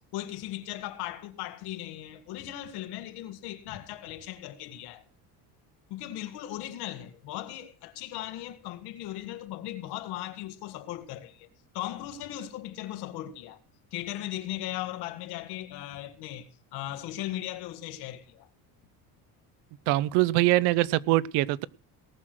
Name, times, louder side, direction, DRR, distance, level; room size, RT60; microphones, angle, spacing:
voice 1, 0.1-5.0 5.9-11.5 11.7-13.6 13.9-18.5, left 14 dB, 75° left, 1.8 m, -38 dB
voice 2, 19.9-21.7, right 17 dB, 80° right, 0.7 m, -23 dB
18.5 x 6.4 x 6.1 m
cardioid pair, 170°, 40 cm